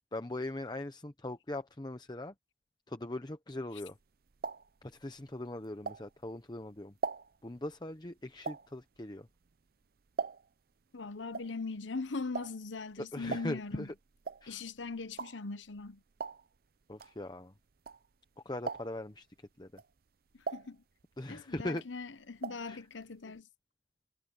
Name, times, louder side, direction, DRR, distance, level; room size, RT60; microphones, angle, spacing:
voice 1, 0.1-2.3 2.9-4.0 4.8-6.9 7.4-9.3 13.0-13.9 14.4-14.6 16.9-17.5 18.4-19.3 19.6-19.8 21.2-21.8 22.7-22.8, left 1 dB, 20° left, 0.8 m, -40 dB
sound 1, 3.9-6.4 6.8-10.7 11.0-18.3 18.6-19.2 19.6-21.4 21.6-22.7 23.0-23.1 23.3-23.4, right 4 dB, 55° right, 0.5 m, -42 dB
voice 2, 10.9-13.9 14.5-16.0 20.3-20.8 21.3-23.5, left 4 dB, 85° left, 1.0 m, -40 dB
head